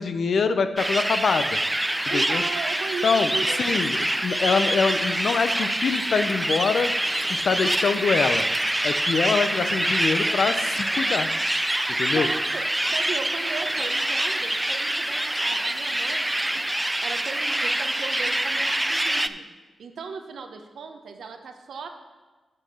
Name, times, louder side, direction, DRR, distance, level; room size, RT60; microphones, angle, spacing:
voice 1, 0.0-1.6 2.1-2.4 3.0-3.3 3.6-6.9 7.3-8.5 8.8-11.3 12.0-12.3, left 5 dB, 70° left, 10 dB, 0.6 m, -24 dB
sound 1, 0.8-19.3, right 1 dB, 15° right, 0.4 m, -25 dB
voice 2, 2.1-3.8 7.4-7.9 12.1-12.6 12.9-16.7 17.0-19.4 19.8-21.9, right 5 dB, 80° right, 5 dB, 0.9 m, -36 dB
6.5 x 6.5 x 7.0 m, 1.3 s
cardioid pair, 60°, 0 cm